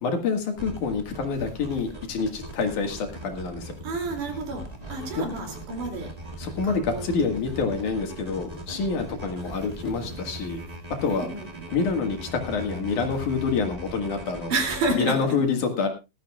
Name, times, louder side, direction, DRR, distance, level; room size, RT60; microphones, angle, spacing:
voice 1, 0.0-3.8 5.2-5.3 6.4-10.6 11.0-11.3 11.7-14.5 14.9-15.9, left 5 dB, 65° left, 4 dB, 3.2 m, -27 dB
sound 1, 0.5-14.9, right 1 dB, 15° right, 1.5 m, -39 dB
voice 2, 3.8-6.1 6.6-7.1 11.0-11.6 14.5-15.4, right 2 dB, 65° right, 4 dB, 4.2 m, -30 dB
19.0 x 13.5 x 2.4 m, 0.26 s
omnidirectional pair, 3.9 m